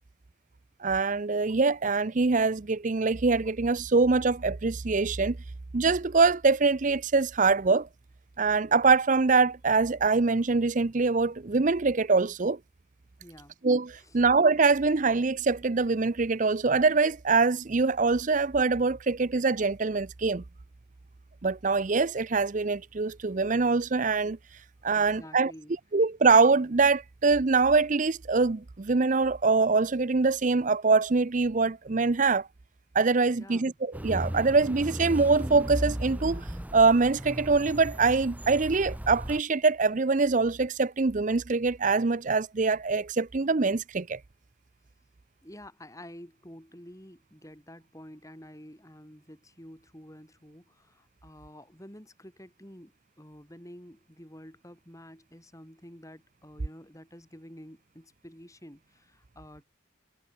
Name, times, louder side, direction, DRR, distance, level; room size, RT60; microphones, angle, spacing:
voice 1, 0.8-5.4 5.7-7.9 8.4-12.6 13.6-20.4 21.4-24.4 24.8-25.5 25.9-32.5 32.9-36.5 36.7-44.2, right 4 dB, 40° right, 0.6 m, -24 dB
voice 2, 13.2-13.6 14.0-14.2 24.9-25.7 33.2-33.7 45.4-52.9 53.2-59.7, equal, 15° left, 6.0 m, -49 dB
sound 1, 33.9-39.4, equal, 10° right, 0.8 m, -36 dB
head